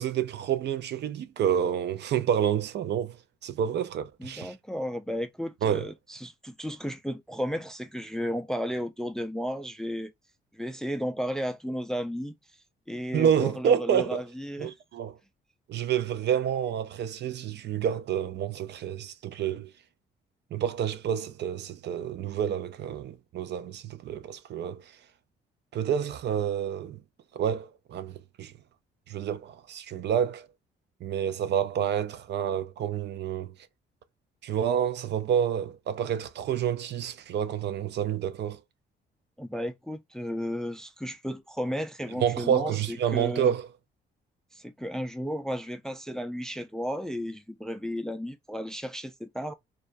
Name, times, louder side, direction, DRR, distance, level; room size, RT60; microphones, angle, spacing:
voice 1, 0.0-3.2 3.4-4.5 5.6-5.9 13.1-14.2 14.6-15.2 15.7-19.7 20.5-24.8 25.7-27.0 27.3-28.5 29.1-30.5 31.0-33.5 34.4-38.6 42.2-43.7, right 9 dB, 60° right, 0.4 m, -28 dB
voice 2, 4.2-10.1 10.5-12.3 12.9-14.7 39.4-43.5 44.5-49.5, equal, 5° left, 0.3 m, -34 dB
2.3 x 2.1 x 2.5 m
cardioid pair, 90°, 20 cm